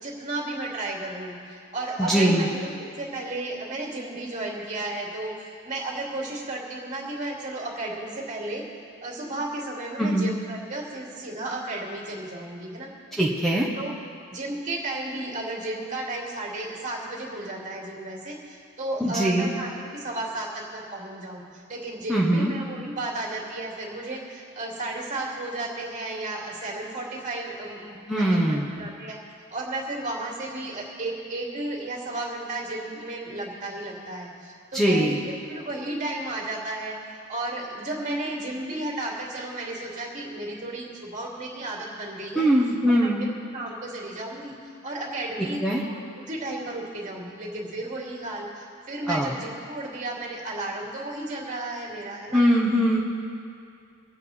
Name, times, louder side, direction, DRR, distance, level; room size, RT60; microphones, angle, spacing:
voice 1, 0.0-8.6 9.0-12.9 13.8-13.9 14.3-29.2 29.5-36.9 37.3-42.5 42.9-44.5 44.8-45.6 45.8-52.4, right 2 dB, 35° right, -2 dB, 2.6 m, -33 dB
voice 2, 2.0-2.5 10.0-10.3 13.2-13.7 19.0-19.5 22.1-22.5 28.1-28.9 34.7-35.2 42.3-43.2 45.6-45.8 49.1-49.3 52.3-53.0, equal, ahead, -5 dB, 1.2 m, -21 dB
24.5 x 8.3 x 4.2 m, 2.4 s
head